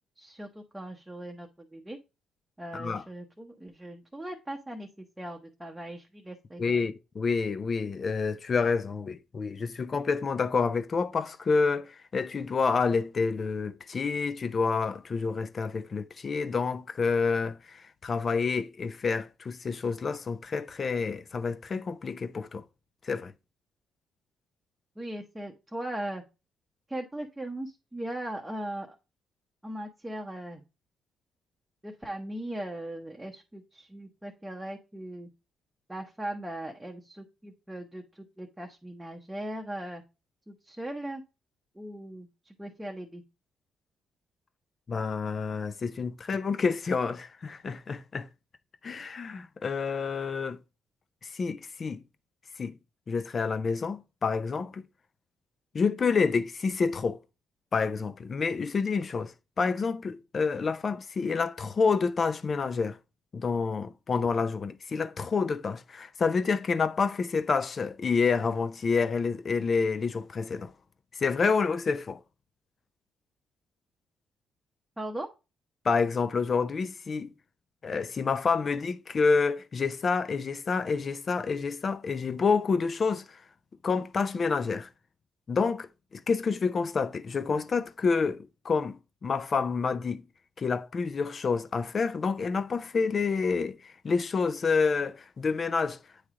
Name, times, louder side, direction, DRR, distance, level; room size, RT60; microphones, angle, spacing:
voice 1, 0.2-2.0 2.6-6.9 25.0-26.2 26.9-29.0 29.6-30.6 31.8-35.3 35.9-40.0 40.5-41.2 41.7-43.2 75.0-75.3, right 1 dB, 10° right, 0.8 m, -39 dB
voice 2, 2.7-3.0 6.6-22.6 23.0-23.3 44.9-48.3 48.8-50.6 51.2-52.0 52.6-52.8 53.1-54.8 55.7-57.2 57.7-63.0 63.3-70.7 71.1-72.2 75.8-77.3 77.8-83.4 83.8-84.9 85.5-89.0 89.2-90.2 90.6-96.0, left 5 dB, 40° left, 0.5 m, -28 dB
8.5 x 3.3 x 3.6 m
cardioid pair, 90°, 0 cm